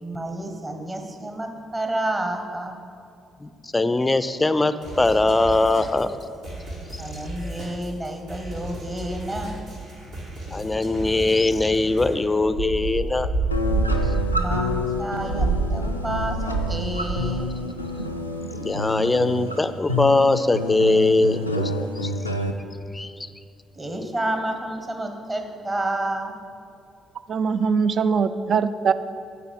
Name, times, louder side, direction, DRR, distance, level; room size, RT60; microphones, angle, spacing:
voice 1, 0.0-2.8 7.0-9.6 14.3-17.5 23.8-26.3, right 1 dB, 25° right, 4 dB, 1.2 m, -30 dB
voice 2, 3.4-6.2 7.5-7.6 10.5-13.3 14.0-14.2 18.5-22.1 22.9-23.1, left 2 dB, 20° left, 13 dB, 0.4 m, -21 dB
sound 1, 4.8-12.2, right 1 dB, 65° right, 2.1 m, -36 dB
sound 2, 12.4-16.8 17.0-17.4, right 3 dB, 90° right, 1.2 m, -26 dB
sound 3, 13.5-22.5, left 2 dB, 90° left, 0.3 m, -28 dB
voice 3, 27.3-28.9, right 6 dB, 50° right, 13 dB, 0.3 m, -21 dB
9.5 x 4.1 x 7.1 m, 2.4 s
figure-of-eight pair, 45°, 0 cm